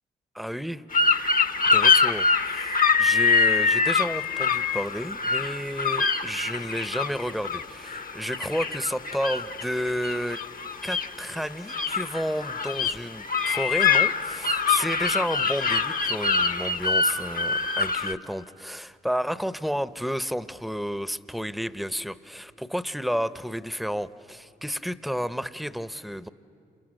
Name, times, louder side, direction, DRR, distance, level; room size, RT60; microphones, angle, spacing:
voice 1, 0.3-0.8 1.6-10.4 10.8-26.3, equal, ahead, 14 dB, 0.8 m, -31 dB
sound 1, 0.9-18.1, left 5 dB, 40° left, 1.0 m, -24 dB
29.0 x 28.5 x 6.6 m, 2.5 s
cardioid pair, 55°, 21 cm